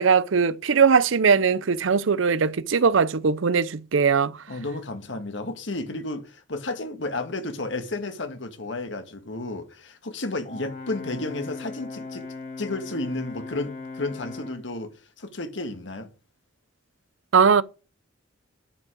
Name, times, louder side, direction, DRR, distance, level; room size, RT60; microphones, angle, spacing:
voice 1, 0.0-4.4 17.3-17.6, right 6 dB, 80° right, 0.6 m, -20 dB
voice 2, 4.5-12.3 12.6-14.9 15.2-16.1, left 2 dB, 65° left, 1.7 m, -32 dB
Brass instrument, 10.4-14.7, left 3 dB, 45° left, 3.0 m, -38 dB
11.0 x 5.4 x 6.3 m
head